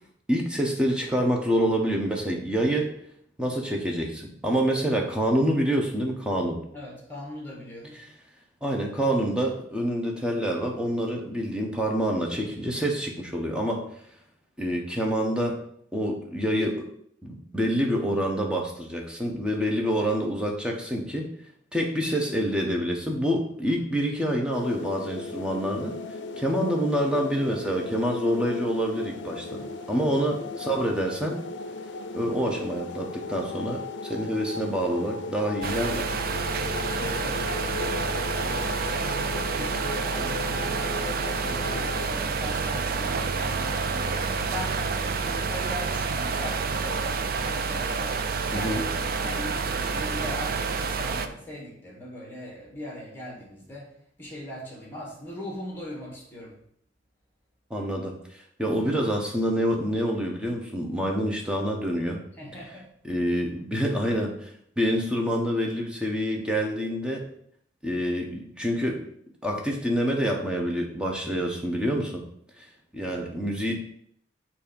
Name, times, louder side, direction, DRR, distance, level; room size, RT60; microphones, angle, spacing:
voice 1, 0.3-2.9 3.4-6.6 8.0-8.1 8.6-13.9 14.6-15.6 15.9-16.9 17.2-21.3 21.7-26.0 26.4-29.6 29.9-31.4 32.1-36.2 48.5-48.8 57.7-62.2 63.0-64.5 64.8-67.3 67.8-69.1 69.4-72.2 72.6-72.7 72.9-73.7, equal, 5° right, 0 dB, 1.0 m, -27 dB
voice 2, 6.7-8.0 36.6-48.2 48.5-53.9 54.2-56.6 62.4-62.9 73.0-73.4, left 1 dB, 10° left, -2 dB, 1.9 m, -40 dB
sound 1, 24.5-42.1, left 3 dB, 75° left, 0.5 m, -36 dB
sound 2, 35.6-51.3, right 4 dB, 55° right, 0.5 m, -28 dB
7.4 x 2.9 x 5.2 m, 0.67 s
head